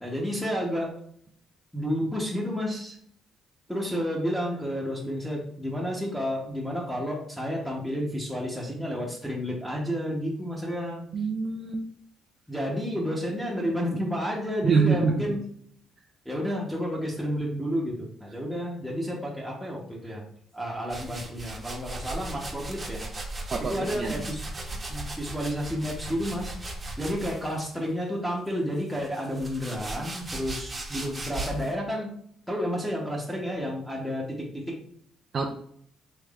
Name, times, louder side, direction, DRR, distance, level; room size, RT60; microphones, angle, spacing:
voice 1, 0.0-1.0 1.7-3.0 3.7-11.1 12.5-15.4 16.2-20.2 20.5-23.0 23.7-24.4 24.9-26.5 27.0-32.1 32.5-34.8, equal, ahead, -3 dB, 0.9 m, -31 dB
voice 2, 11.1-11.8 14.6-15.1 23.5-24.1 35.3-35.5, right 5 dB, 45° right, 1 dB, 0.4 m, -25 dB
sound 1, 20.9-27.7 28.5-31.7, right 2 dB, 25° right, 0.9 m, -37 dB
3.3 x 3.1 x 2.4 m, 0.65 s
cardioid pair, 80°, 0 cm